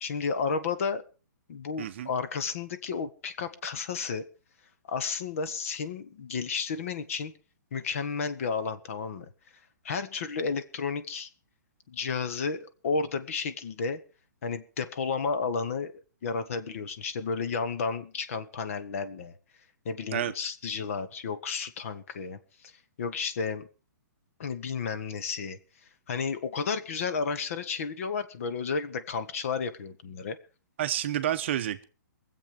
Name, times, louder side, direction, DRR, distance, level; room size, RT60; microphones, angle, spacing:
voice 1, 0.0-1.0 1.5-4.3 4.9-7.3 7.7-9.3 9.8-11.3 11.9-14.0 14.4-15.9 16.2-19.3 19.8-22.4 22.6-22.7 23.0-23.7 24.4-25.6 26.1-30.4, left 5 dB, 45° left, 11 dB, 1.4 m, -32 dB
voice 2, 1.8-2.1 20.1-20.3 30.8-31.8, right 11 dB, 40° right, 10 dB, 0.9 m, -29 dB
22.5 x 7.7 x 5.2 m, 0.35 s
hypercardioid pair, 170°, 10 cm